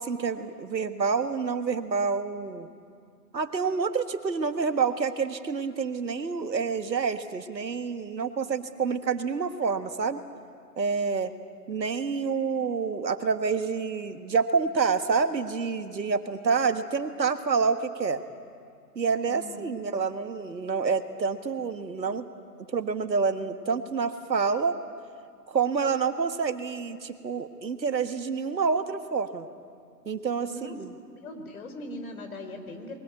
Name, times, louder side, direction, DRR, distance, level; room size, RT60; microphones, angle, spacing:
voice 1, 0.0-2.7 3.3-10.2 10.8-11.3 11.7-18.2 18.9-22.2 22.7-24.8 25.5-29.5 30.0-30.9, right 5 dB, 90° right, 9 dB, 1.6 m, -28 dB
voice 2, 19.3-19.6 30.5-30.7 31.2-33.0, left 1 dB, 55° left, 7 dB, 3.6 m, -40 dB
22.5 x 19.0 x 9.1 m, 2.3 s
hypercardioid pair, 150°, 50 cm